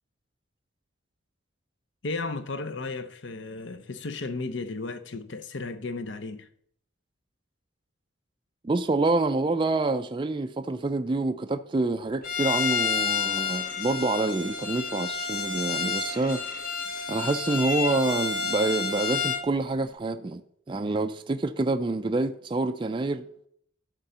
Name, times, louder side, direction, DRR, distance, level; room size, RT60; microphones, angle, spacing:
voice 1, 2.0-6.5, left 3 dB, 60° left, 0.7 m, -34 dB
voice 2, 8.6-16.4 17.1-20.4 20.7-23.2, right 2 dB, 25° right, 0.3 m, -27 dB
Bowed string instrument, 12.2-19.5, left 5 dB, 45° left, 1.1 m, -30 dB
11.0 x 3.8 x 6.8 m
head